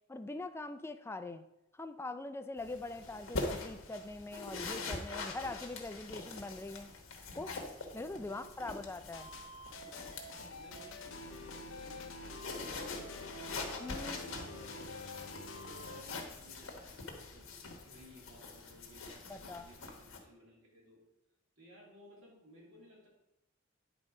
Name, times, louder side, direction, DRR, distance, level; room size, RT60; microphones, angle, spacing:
voice 1, 0.1-1.4 1.7-6.9 7.4-7.6 7.9-9.3 13.8-14.4 19.3-19.7, left 2 dB, 10° left, 10 dB, 0.4 m, -43 dB
sound 1, 2.6-20.2, left 3 dB, 85° left, 1.2 m, -44 dB
voice 2, 8.1-8.8 10.1-13.5 14.0-15.3 15.6-21.0 21.6-23.1, equal, 70° right, -4 dB, 3.1 m, -58 dB
sound 2, 9.1-16.0, left 2 dB, 70° left, 0.7 m, -47 dB
9.5 x 3.9 x 4.9 m, 0.89 s
head